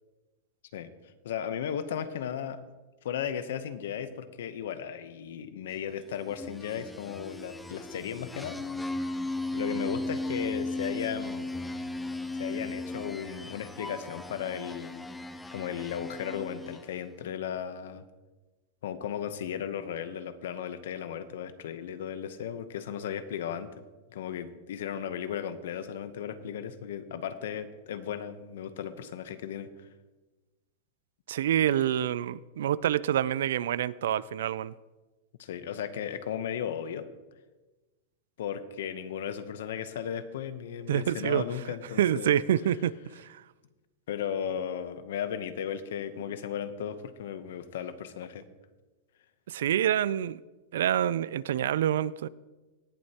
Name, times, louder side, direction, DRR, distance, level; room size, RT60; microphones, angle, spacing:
voice 1, 1.2-2.6 3.0-8.6 9.5-11.5 12.3-15.1 15.5-18.0 18.8-23.7 24.1-29.7 35.4-37.1 38.4-42.4 44.1-48.5, left 8 dB, 75° left, 0.8 m, -35 dB
sound 1, 6.1-17.0, left 2 dB, 5° left, 0.4 m, -36 dB
voice 2, 31.3-34.7 40.9-41.4 42.0-43.4 49.5-50.4 50.7-52.3, right 10 dB, 85° right, 0.3 m, -27 dB
18.0 x 7.8 x 2.9 m
supercardioid pair, 165°, 0 cm